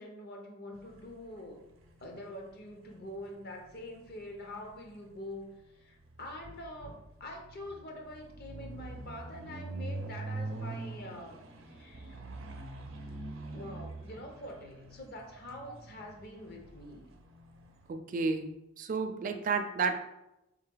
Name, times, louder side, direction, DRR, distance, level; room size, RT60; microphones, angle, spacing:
voice 1, 0.0-1.6 2.0-11.4 11.7-12.2 13.0-13.1 13.5-17.1, left 1 dB, 55° left, 2 dB, 0.8 m, -45 dB
sound 1, 0.7-17.9, right 2 dB, 85° right, 0.6 m, -45 dB
voice 2, 17.9-19.9, right 4 dB, 45° right, 7 dB, 0.4 m, -32 dB
3.6 x 3.2 x 3.8 m, 0.92 s
head